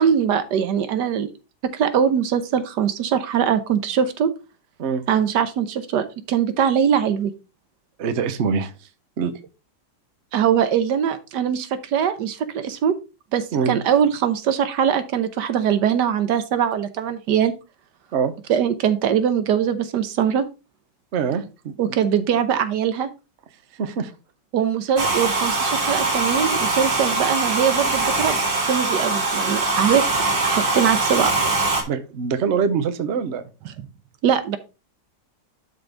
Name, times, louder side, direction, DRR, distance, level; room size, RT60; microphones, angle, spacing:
voice 1, 0.0-1.3 1.6-4.3 5.1-7.3 10.3-12.9 13.3-17.5 18.5-20.4 21.8-23.1 24.5-30.1 30.4-31.3 34.2-34.6, right 8 dB, 85° right, 11 dB, 1.4 m, -21 dB
voice 2, 8.0-8.7 9.2-9.3 13.5-13.8 18.1-18.3 21.1-22.0 23.8-24.1 31.9-33.5, right 6 dB, 50° right, 10 dB, 1.0 m, -24 dB
Domestic sounds home sounds, 25.0-31.8, right 3 dB, 35° right, 1.7 m, -22 dB
11.5 x 3.9 x 3.4 m, 0.30 s
omnidirectional pair, 1.8 m